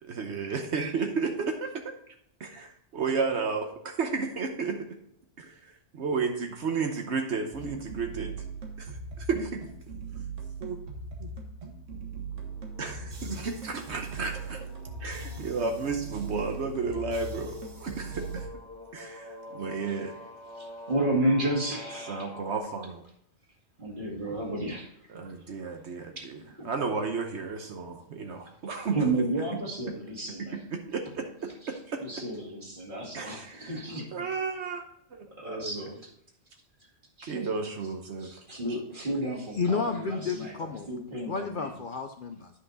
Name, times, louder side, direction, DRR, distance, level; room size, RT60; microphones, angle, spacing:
voice 1, 0.0-1.7 2.4-3.7 4.0-4.8 5.4-8.3 8.8-8.9 9.2-9.6 10.6-10.8 11.2-11.3 12.8-14.6 15.0-18.5 18.9-20.1 22.1-23.0 25.1-29.0 30.5-32.0 33.1-33.8 34.1-34.8 35.1-35.9 37.3-38.4, right 4 dB, 65° right, 4 dB, 1.1 m, -32 dB
sound 1, 7.5-18.5, right 4 dB, 85° right, 1.7 m, -40 dB
sound 2, 12.3-22.6, left 2 dB, 20° left, 1.3 m, -47 dB
voice 2, 20.5-22.3 23.8-24.9 26.1-26.7 28.9-30.6 31.6-31.7 32.0-34.1 35.4-36.1 37.2-37.3 38.2-40.6 40.9-41.7, right 1 dB, 40° right, -2 dB, 2.3 m, -32 dB
voice 3, 39.5-40.9 41.2-42.5, left 4 dB, 55° left, 6 dB, 0.6 m, -31 dB
9.8 x 5.7 x 4.0 m, 0.71 s
omnidirectional pair, 1.2 m